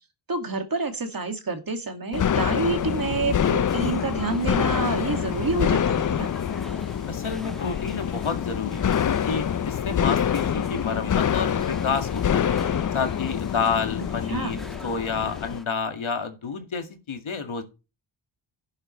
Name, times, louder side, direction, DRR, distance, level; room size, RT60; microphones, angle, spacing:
voice 1, 0.3-6.3 14.3-14.6, right 3 dB, 45° right, 6 dB, 2.2 m, -28 dB
sound 1, 2.1-15.6, left 9 dB, 40° left, 0.4 m, -26 dB
sound 2, 2.8-15.7, equal, ahead, 1.3 m, -44 dB
voice 2, 7.1-12.5 12.9-17.6, left 5 dB, 70° left, 6 dB, 2.1 m, -29 dB
11.0 x 11.0 x 3.2 m, 0.29 s
wide cardioid pair, 120°, 49 cm